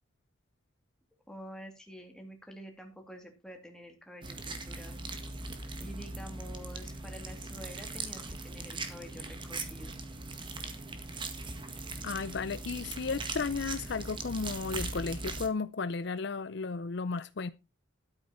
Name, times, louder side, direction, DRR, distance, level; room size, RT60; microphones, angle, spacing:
voice 1, 1.3-5.0 5.8-9.9, equal, 5° left, 2.8 m, -48 dB
sound 1, 4.2-15.5, right 3 dB, 25° right, 1.8 m, -40 dB
voice 2, 12.0-17.5, left 4 dB, 55° left, 0.5 m, -34 dB
12.5 x 8.9 x 4.3 m
head